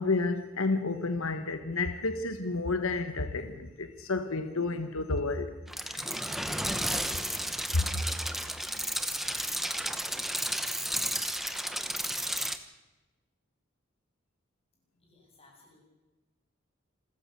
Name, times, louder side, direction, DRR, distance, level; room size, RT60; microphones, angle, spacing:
voice 1, 0.0-5.5 5.8-6.1 7.7-8.0, left 3 dB, 80° left, 1.3 m, -30 dB
sound 1, 5.7-12.6, right 1 dB, ahead, 1.0 m, -32 dB
voice 2, 15.0-15.8, left 2 dB, 30° left, 7.4 m, -60 dB
27.5 x 14.5 x 6.8 m
head